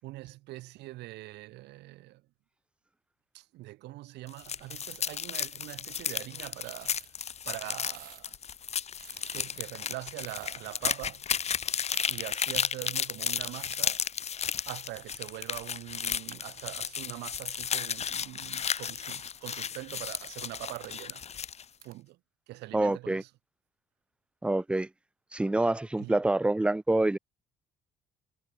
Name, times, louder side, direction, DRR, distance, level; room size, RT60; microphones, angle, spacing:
voice 1, 0.0-2.2 3.3-7.1 7.4-8.3 9.3-11.2 12.1-14.0 14.6-21.2 21.8-22.2 22.5-23.3 26.0-26.1, right 18 dB, 85° right, 6.5 m, -43 dB
sound 1, 4.3-21.6, left 7 dB, 40° left, 1.7 m, -34 dB
sound 2, 6.2-8.4 8.7-8.8 9.0-10.7 11.0-11.1 11.8-12.1 12.7-12.8 13.1-14.0 14.4-14.5 15.1-15.3 15.6-15.7 16.3-16.8 17.3-17.7 18.1-20.1 20.8-21.9, right 11 dB, 60° right, 6.5 m, -52 dB
voice 2, 22.7-23.2 24.4-24.9 25.3-27.2, right 2 dB, 5° right, 0.5 m, -26 dB
cardioid pair, 110°, 17 cm